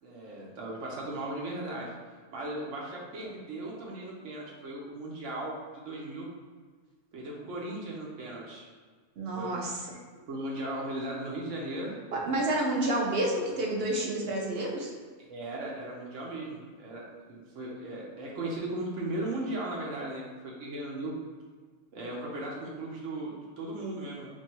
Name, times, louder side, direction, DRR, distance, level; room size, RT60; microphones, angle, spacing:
voice 1, 0.0-1.9 2.3-5.5 5.8-6.3 7.1-8.7 9.3-9.6 10.3-12.0 15.2-21.1 21.9-24.3, right 1 dB, 85° right, -3 dB, 1.1 m, -37 dB
voice 2, 9.2-9.8 12.1-14.9, right 1 dB, 60° right, -1 dB, 0.8 m, -29 dB
3.0 x 2.7 x 4.4 m, 1.5 s
omnidirectional pair, 1.3 m